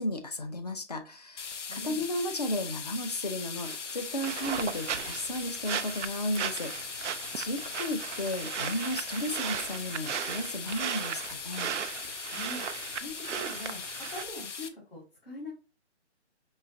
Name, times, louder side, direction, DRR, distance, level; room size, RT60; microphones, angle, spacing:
voice 1, 0.0-6.7 7.4-11.7, left 1 dB, 35° left, 7 dB, 0.5 m, -34 dB
sound 1, 1.4-14.7, left 5 dB, 85° left, 0.8 m, -40 dB
voice 2, 1.7-2.0 12.3-12.6 12.9-13.8 14.1-15.5, left 1 dB, 50° left, -5 dB, 2.1 m, -42 dB
sound 2, 3.6-14.2, right 9 dB, 85° right, 0.5 m, -37 dB
5.4 x 2.8 x 2.5 m, 0.33 s
hypercardioid pair, 175°, 35 cm